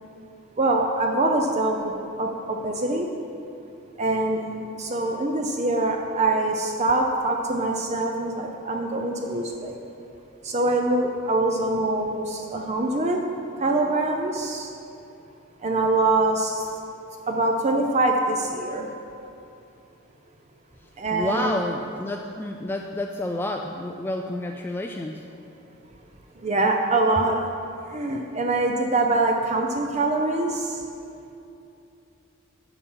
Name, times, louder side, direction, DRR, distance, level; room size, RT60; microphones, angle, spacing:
voice 1, 0.6-3.1 4.0-9.8 10.4-13.2 13.6-14.7 15.6-16.7 17.3-18.9 21.0-21.6 26.4-27.4 27.9-30.8, right 2 dB, 35° right, 2 dB, 0.6 m, -24 dB
voice 2, 20.8-25.3, left 1 dB, 10° left, 2 dB, 0.3 m, -30 dB
11.0 x 7.1 x 5.6 m, 2.7 s
head